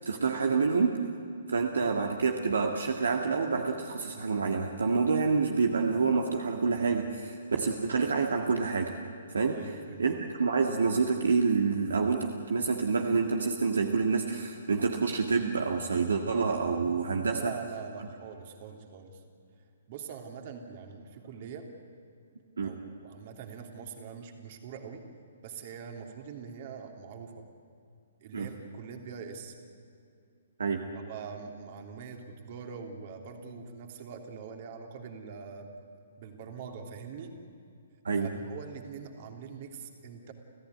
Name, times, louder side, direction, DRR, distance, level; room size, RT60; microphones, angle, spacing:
voice 1, 0.1-1.2 1.5-9.0 9.3-9.6 10.0-17.6 22.6-22.7 28.3-28.5 30.6-30.9 38.0-38.3, right 4 dB, 70° right, 3 dB, 1.8 m, -27 dB
voice 2, 9.5-10.0 17.2-19.2 19.9-21.7 22.6-25.0 25.4-27.4 28.2-29.5 30.9-35.7 36.2-37.3 38.2-40.3, right 6 dB, 45° right, 4 dB, 3.1 m, -43 dB
30.0 x 15.0 x 9.6 m, 2.5 s
figure-of-eight pair, 125°, 0 cm